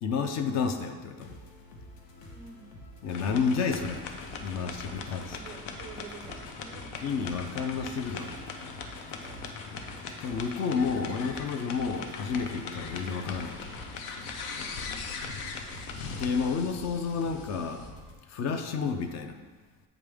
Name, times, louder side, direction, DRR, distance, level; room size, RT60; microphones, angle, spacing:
voice 1, 0.0-1.4 3.0-5.4 7.0-8.3 10.2-13.6 16.2-17.8 18.3-19.4, left 5 dB, 45° left, 7 dB, 0.5 m, -30 dB
sound 1, 1.2-18.1, equal, 60° left, 1.3 m, -49 dB
voice 2, 2.3-2.7 4.9-6.9 9.2-9.5 14.5-14.9, right 4 dB, 20° right, 1 dB, 0.4 m, -49 dB
sound 2, 3.1-17.9, left 4 dB, 85° left, 0.9 m, -40 dB
sound 3, 6.9-11.4, left 1 dB, 15° left, 1.2 m, -54 dB
8.2 x 5.1 x 3.5 m, 1.3 s
cardioid pair, 180°, 39 cm